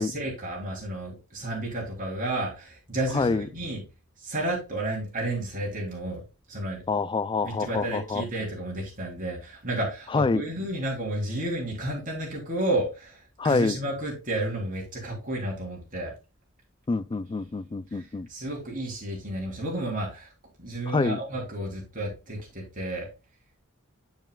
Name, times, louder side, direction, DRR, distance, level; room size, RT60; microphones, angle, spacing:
voice 1, 0.0-3.8 4.2-6.2 6.5-6.8 7.4-16.1 17.9-18.0 18.3-20.3 20.6-23.1, right 1 dB, 40° right, 3.4 m, -32 dB
voice 2, 3.1-3.5 6.9-8.2 10.1-10.4 13.4-13.8 16.9-18.3 20.9-21.2, left 4 dB, 25° left, 0.3 m, -26 dB
7.9 x 7.0 x 2.3 m
head